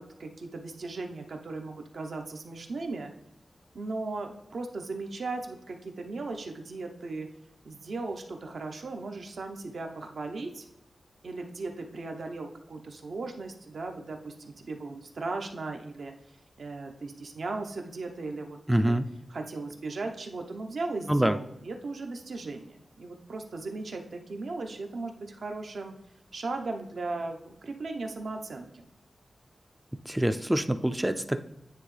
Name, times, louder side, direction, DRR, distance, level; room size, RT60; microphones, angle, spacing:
voice 1, 0.0-3.1 3.7-7.3 7.7-10.7 11.2-16.1 16.6-18.9 19.3-25.9 26.3-28.9, right 3 dB, 70° right, 4 dB, 0.8 m, -37 dB
voice 2, 18.7-19.1 21.1-21.4 30.1-31.4, right 1 dB, 10° right, 9 dB, 0.3 m, -25 dB
9.5 x 3.4 x 3.3 m, 0.83 s
wide cardioid pair, 140°, 0 cm